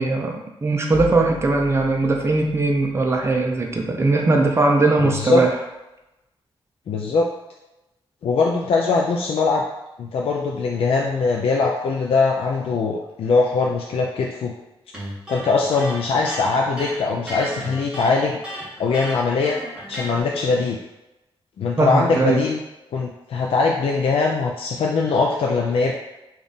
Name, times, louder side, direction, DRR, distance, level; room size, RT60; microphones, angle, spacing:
voice 1, 0.0-5.5 21.8-22.4, right 3 dB, 25° right, 1 dB, 0.5 m, -20 dB
sound 1, 0.9-4.8, left 4 dB, 25° left, 0.9 m, -39 dB
voice 2, 5.0-5.4 6.9-7.3 8.2-9.6 10.0-14.5 15.3-18.4 18.8-19.6 19.9-20.8 21.6-22.6 22.9-25.9, left 4 dB, 70° left, 0 dB, 0.4 m, -21 dB
Electric guitar, 14.9-20.2, equal, 10° right, 1.1 m, -34 dB
3.5 x 2.4 x 4.0 m, 0.96 s
wide cardioid pair, 155°, 10 cm